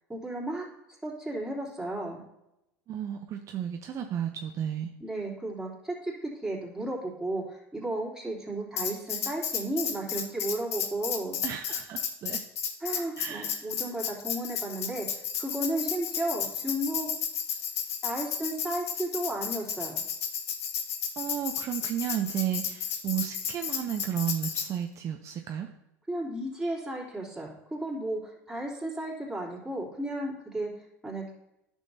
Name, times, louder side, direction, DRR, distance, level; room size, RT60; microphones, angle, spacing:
voice 1, 0.1-0.6 1.0-2.2 5.0-11.4 12.8-15.1 15.4-17.1 18.0-20.0 26.1-30.7 31.0-31.3, right 1 dB, 5° right, -5 dB, 3.1 m, -34 dB
voice 2, 2.9-4.9 11.4-12.4 13.2-13.7 21.2-25.7, right 10 dB, 40° right, 5 dB, 0.6 m, -33 dB
Tambourine, 8.8-24.7, left 8 dB, 80° left, 0.9 m, -33 dB
11.0 x 6.3 x 2.7 m, 0.88 s
hypercardioid pair, 85°, 8 cm